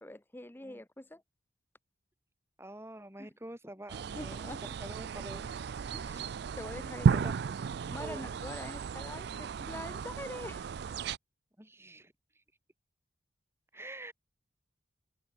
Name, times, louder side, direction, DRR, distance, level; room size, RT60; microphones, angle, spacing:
voice 1, 0.0-1.2 3.2-3.3 4.1-4.7 5.9-7.3 7.9-10.7, left 1 dB, 10° left, 0.8 m, -44 dB
voice 2, 2.6-5.5 5.8-6.3 7.2-7.4 8.0-8.3 11.6-12.1 13.7-14.1, right 1 dB, 15° right, 4.8 m, -47 dB
sound 1, 3.9-11.2, right 5 dB, 55° right, 0.4 m, -34 dB
head